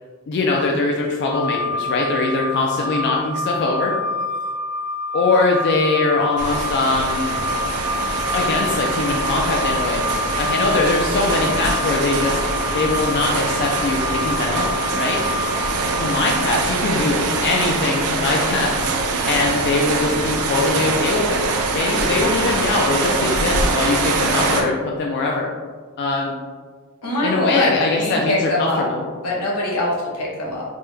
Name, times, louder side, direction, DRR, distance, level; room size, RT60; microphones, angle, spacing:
voice 1, 0.3-3.9 5.1-7.4 8.3-10.0 10.4-12.4 12.7-15.2 16.0-18.7 19.0-25.5 26.0-26.3 27.2-29.0, left 3 dB, 50° left, -1 dB, 0.3 m, -22 dB
sound 1, 1.3-16.4, left 2 dB, 15° right, 0.6 m, -27 dB
sound 2, 6.4-24.6, right 3 dB, 75° right, 0.4 m, -23 dB
voice 2, 27.0-28.8 29.2-30.6, left 2 dB, 85° left, -4 dB, 0.9 m, -23 dB
3.4 x 2.1 x 3.1 m, 1.5 s
head